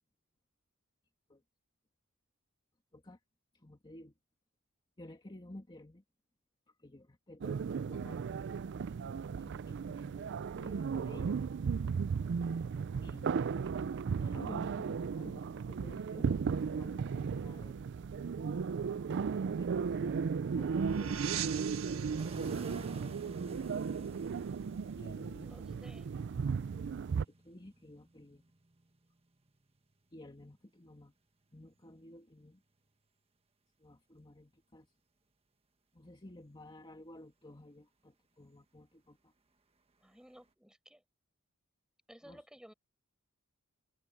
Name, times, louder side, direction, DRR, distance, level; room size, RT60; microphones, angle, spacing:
voice 1, 3.5-4.1 5.0-6.0 6.8-8.2 9.4-11.4 13.0-13.5 14.2-17.8 19.1-21.9 22.3-23.1 25.0-25.5 27.3-28.4 30.1-31.1 31.5-32.6 33.8-34.9 35.9-39.3 42.2-42.4, left 1 dB, 25° left, 2.2 m, -53 dB
sound 1, 7.4-27.2, right 6 dB, 55° right, 0.4 m, -35 dB
sound 2, 19.8-24.7, right 9 dB, 75° right, 1.5 m, -45 dB
sound 3, 22.2-29.9 31.5-31.9 40.4-40.5, right 2 dB, 30° right, 1.4 m, -51 dB
voice 2, 25.4-26.1 40.0-41.0 42.1-42.7, equal, 5° right, 5.1 m, -56 dB
head